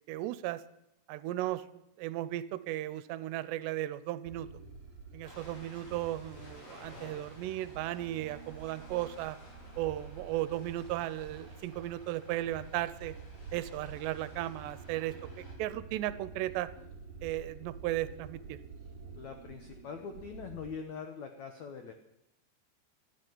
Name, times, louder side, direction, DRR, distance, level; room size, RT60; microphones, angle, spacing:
voice 1, 0.1-0.6 1.1-1.7 2.0-4.5 5.1-9.4 9.8-13.1 13.5-16.7 17.2-18.6, right 14 dB, 80° right, 16 dB, 2.8 m, -35 dB
sound 1, 4.2-20.7, right 4 dB, 40° right, 4.3 m, -49 dB
Ocean, 5.2-15.5, left 2 dB, 60° left, 6.1 m, -55 dB
voice 2, 19.1-21.9, left 5 dB, 75° left, 6 dB, 1.6 m, -43 dB
14.5 x 10.5 x 9.5 m, 0.86 s
omnidirectional pair, 5.0 m